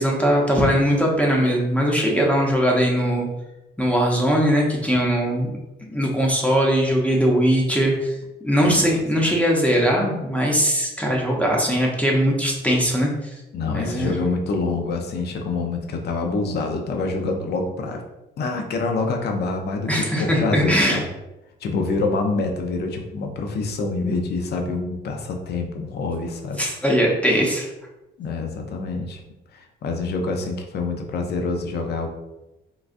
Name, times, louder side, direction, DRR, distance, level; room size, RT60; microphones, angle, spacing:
voice 1, 0.0-3.3 3.8-5.5 5.9-8.2 8.4-13.3 13.7-14.1 19.9-21.0 26.6-27.7, equal, 5° left, -2 dB, 0.7 m, -20 dB
voice 2, 8.6-9.3 13.5-18.0 18.4-21.1 21.6-26.6 28.2-29.2 29.5-32.1, left 3 dB, 55° left, 3 dB, 0.5 m, -26 dB
3.7 x 2.3 x 2.5 m, 0.98 s
cardioid pair, 90°, 20 cm